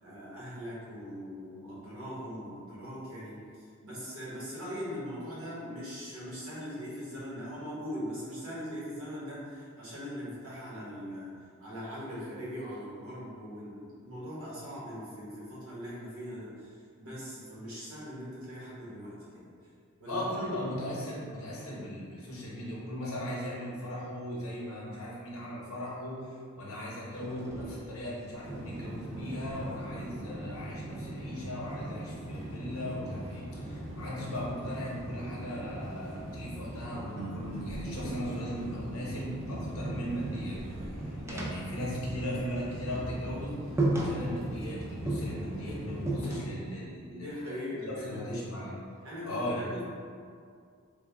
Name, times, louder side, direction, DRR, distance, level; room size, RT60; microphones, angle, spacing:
voice 1, 0.0-11.3 11.6-16.7 17.0-19.4 20.0-20.2 20.6-20.7 47.1-48.4 49.0-49.8, equal, 85° right, -8 dB, 1.2 m, -40 dB
voice 2, 20.1-40.6 40.8-43.6 43.9-47.6 48.0-48.7 49.2-49.8, equal, 75° left, -5 dB, 0.8 m, -38 dB
sound 1, 27.1-30.3 30.6-33.5 34.9-36.9 37.3-42.6 42.9-43.1 43.4-43.5 43.8-44.7 45.1-46.8, right 2 dB, 15° right, 0.3 m, -38 dB
sound 2, 28.4-46.1, right 1 dB, 30° right, 0.8 m, -41 dB
sound 3, 37.2-40.3, right 1 dB, 65° right, 1.0 m, -47 dB
3.4 x 2.2 x 3.4 m, 2.2 s
head